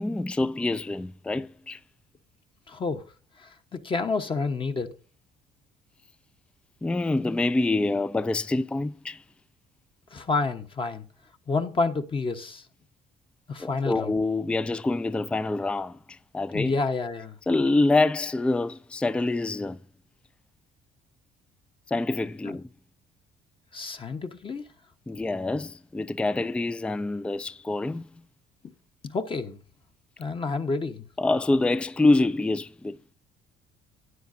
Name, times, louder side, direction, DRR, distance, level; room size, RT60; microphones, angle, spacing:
voice 1, 0.0-1.8 6.8-9.2 13.6-16.8 17.5-19.8 21.9-22.7 25.1-28.1 31.2-33.0, left 2 dB, 5° left, 0.4 m, -26 dB
voice 2, 2.7-3.0 3.4-4.9 10.1-11.0 11.5-12.7 13.5-14.1 16.5-17.4 22.4-22.6 23.7-24.6 28.6-28.7 29.0-29.6 30.2-31.0, left 4 dB, 30° left, 1.1 m, -29 dB
12.5 x 9.5 x 2.7 m
cardioid pair, 110°, 17 cm